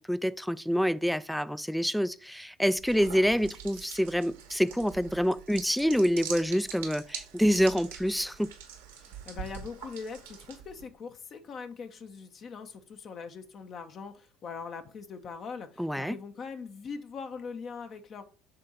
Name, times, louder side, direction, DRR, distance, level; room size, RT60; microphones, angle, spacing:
voice 1, 0.1-8.5 15.8-16.2, equal, ahead, 0.4 m, -27 dB
sound 1, 2.8-10.9, right 7 dB, 85° right, 1.6 m, -44 dB
voice 2, 9.0-18.2, left 5 dB, 45° left, 1.0 m, -41 dB
6.7 x 3.7 x 5.0 m
hypercardioid pair, 75°, 0 cm